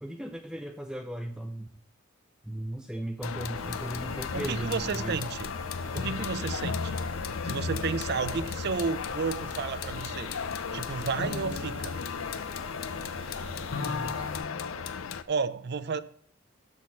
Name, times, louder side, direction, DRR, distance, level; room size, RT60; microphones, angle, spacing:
voice 1, 0.0-1.7 2.4-5.2 13.8-14.1, right 1 dB, 5° right, 0.5 m, -36 dB
sound 1, 3.2-15.2, left 6 dB, 85° left, 0.5 m, -36 dB
sound 2, 3.5-14.4, right 1 dB, 30° right, 2.1 m, -46 dB
sound 3, 4.1-13.3 13.6-15.1, left 4 dB, 65° left, 0.9 m, -40 dB
voice 2, 4.3-5.5 5.9-7.0 7.4-10.4 10.7-12.0 14.8-15.0 15.3-16.0, right 5 dB, 55° right, 0.5 m, -32 dB
12.5 x 4.3 x 5.7 m
head